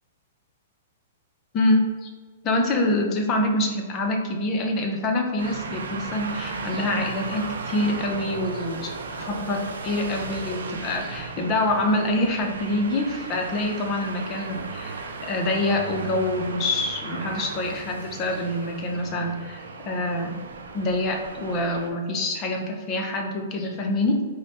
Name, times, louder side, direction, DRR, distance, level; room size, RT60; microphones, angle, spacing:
voice 1, 1.5-2.1 2.4-20.4 20.7-24.3, left 1 dB, 30° left, 2 dB, 0.6 m, -26 dB
sound 1, 5.4-21.9, right 4 dB, 85° right, 0.4 m, -36 dB
3.2 x 2.0 x 4.2 m, 1.5 s
hypercardioid pair, 130°, 0 cm